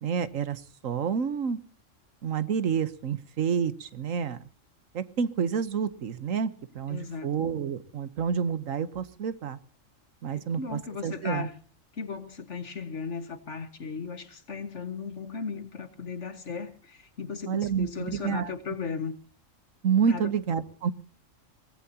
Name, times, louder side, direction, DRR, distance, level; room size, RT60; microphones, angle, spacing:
voice 1, 0.0-1.6 2.2-4.4 4.9-6.5 6.7-9.6 10.2-11.5 17.5-18.5 19.8-20.9, right 7 dB, 85° right, 1.4 m, -29 dB
voice 2, 6.9-7.3 10.4-11.5 12.0-19.2 20.1-20.3, left 5 dB, 65° left, 1.9 m, -36 dB
22.5 x 18.5 x 2.9 m
omnidirectional pair, 1.3 m